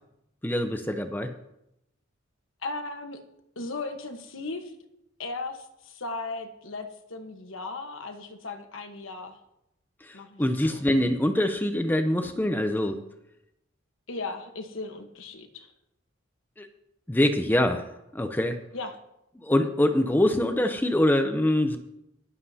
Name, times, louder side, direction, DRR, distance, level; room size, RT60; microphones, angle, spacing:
voice 1, 0.4-1.3 10.0-13.0 16.6-16.7 17.1-17.9 18.1-18.6 19.4-21.8, left 1 dB, 10° left, 7 dB, 0.6 m, -24 dB
voice 2, 2.6-3.2 3.6-4.7 5.2-9.4 10.1-10.4 10.7-10.9 14.1-15.7 18.7-18.9, left 3 dB, 80° left, 5 dB, 1.2 m, -36 dB
22.5 x 7.5 x 2.8 m, 0.85 s
head